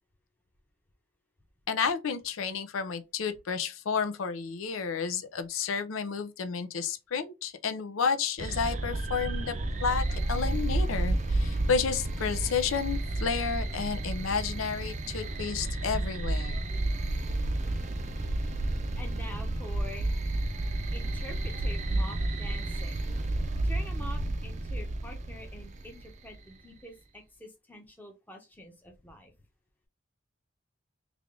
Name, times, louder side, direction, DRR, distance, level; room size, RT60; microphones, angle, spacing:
voice 1, 1.7-16.7, left 6 dB, 90° left, 0.5 m, -31 dB
sound 1, 8.4-26.3, right 2 dB, 35° right, 0.5 m, -31 dB
voice 2, 18.1-18.6 19.0-20.1 20.9-23.1 23.6-29.3, equal, 10° left, 0.7 m, -46 dB
3.3 x 2.4 x 3.6 m
head